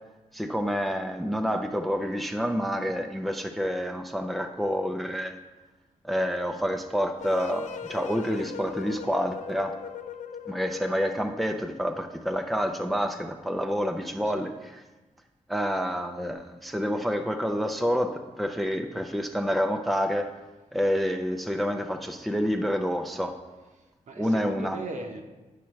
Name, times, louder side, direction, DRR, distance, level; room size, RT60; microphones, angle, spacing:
voice 1, 0.3-5.4 6.0-9.7 10.5-14.5 15.5-20.3 20.7-23.4 24.2-24.8, equal, ahead, 5 dB, 0.5 m, -28 dB
sound 1, 7.2-11.5, left 8 dB, 70° left, 0.4 m, -39 dB
voice 2, 23.8-25.2, right 2 dB, 70° right, 3 dB, 0.9 m, -39 dB
10.5 x 5.7 x 3.2 m, 1.2 s
wide cardioid pair, 100°, 13 cm